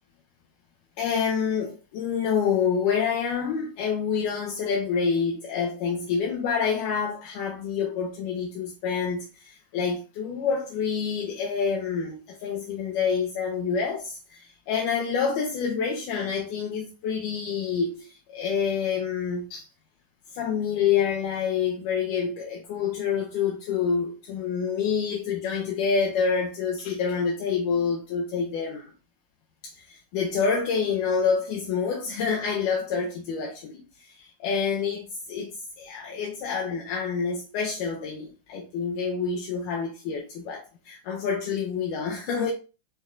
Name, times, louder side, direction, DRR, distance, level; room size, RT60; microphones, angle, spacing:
voice 1, 1.0-19.7 20.3-28.9 29.6-42.5, left 6 dB, 45° left, 0.7 m, -27 dB
4.4 x 3.0 x 2.5 m
figure-of-eight pair, 90°, 0 cm